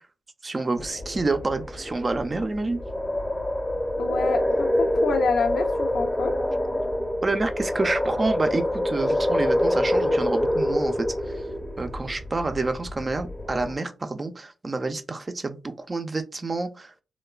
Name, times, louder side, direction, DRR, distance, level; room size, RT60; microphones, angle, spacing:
voice 1, 0.4-2.8 7.2-11.4 11.8-16.9, right 3 dB, 30° right, 0.4 m, -28 dB
sound 1, 0.8-13.7, left 1 dB, 15° left, 0.6 m, -26 dB
voice 2, 4.0-6.4, left 4 dB, 80° left, 0.3 m, -27 dB
3.0 x 2.1 x 2.3 m
cardioid pair, 90°, 0 cm